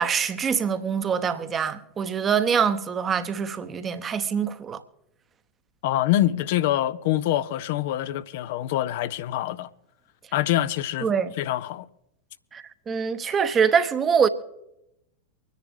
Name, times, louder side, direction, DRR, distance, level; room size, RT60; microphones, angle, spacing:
voice 1, 0.0-4.8 11.0-11.3 12.5-14.3, right 6 dB, 20° right, 0.9 m, -24 dB
voice 2, 5.8-9.7 10.3-11.1 11.4-11.9, left 13 dB, 50° left, 0.5 m, -25 dB
24.5 x 10.5 x 3.5 m
figure-of-eight pair, 90°, 0 cm